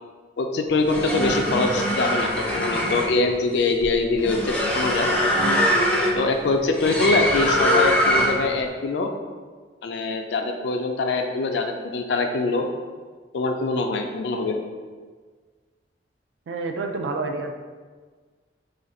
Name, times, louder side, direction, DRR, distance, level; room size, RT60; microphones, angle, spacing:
voice 1, 0.4-5.1 6.2-9.1 9.8-12.7 13.3-14.6, left 3 dB, 75° left, 4 dB, 0.3 m, -23 dB
sound 1, 0.7-8.5, equal, 5° left, 0.4 m, -23 dB
voice 2, 16.5-17.5, right 3 dB, 85° right, 4 dB, 0.4 m, -28 dB
2.5 x 2.4 x 4.1 m, 1.5 s
head